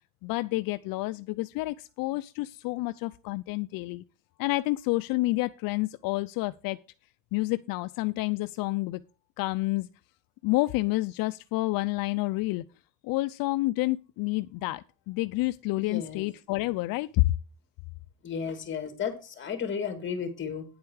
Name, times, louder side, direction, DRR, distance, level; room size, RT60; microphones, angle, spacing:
voice 1, 0.2-4.0 4.4-6.8 7.3-9.0 9.4-9.9 10.4-12.6 13.0-17.2, left 20 dB, 75° left, 0.6 m, -29 dB
voice 2, 15.8-16.3 18.2-20.6, left 6 dB, 35° left, 2.7 m, -33 dB
9.7 x 8.1 x 4.7 m
cardioid pair, 135°, 35 cm